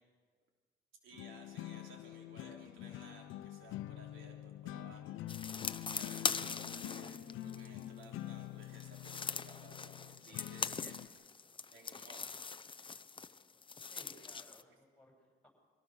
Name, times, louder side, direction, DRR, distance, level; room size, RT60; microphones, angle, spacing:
voice 1, 1.0-5.6 5.9-11.0 11.7-12.4, right 3 dB, 80° right, 1 dB, 3.4 m, -58 dB
sound 1, 1.1-11.1, left 13 dB, 85° left, 0.7 m, -46 dB
sound 2, 5.3-8.0 8.6-14.6, left 5 dB, 25° left, 0.7 m, -41 dB
sound 3, 6.6-10.4, left 7 dB, 60° left, 1.4 m, -57 dB
voice 2, 13.9-15.5, left 1 dB, 5° left, 1 dB, 7.1 m, -61 dB
24.0 x 17.0 x 6.4 m, 1.5 s
cardioid pair, 90°, 20 cm